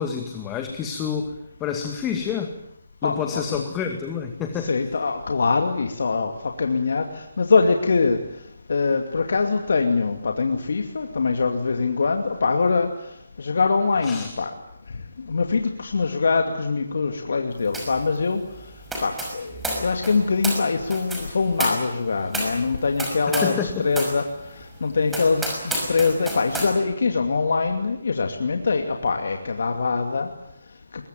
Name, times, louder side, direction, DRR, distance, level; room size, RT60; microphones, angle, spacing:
voice 1, 0.0-1.3 1.6-2.5 3.0-4.7 14.0-14.3 23.3-23.9, left 7 dB, 15° left, 5 dB, 2.0 m, -28 dB
voice 2, 3.0-3.6 4.6-8.2 8.7-12.9 13.4-14.5 15.3-18.4 19.0-24.2 24.5-30.3, left 4 dB, 70° left, 4 dB, 2.5 m, -23 dB
sound 1, 17.7-18.0 18.3-23.6 23.9-24.2 24.6-24.7 25.1-26.7, right 1 dB, 5° right, 5.8 m, -30 dB
22.5 x 22.0 x 9.3 m, 0.77 s
hypercardioid pair, 155°, 0 cm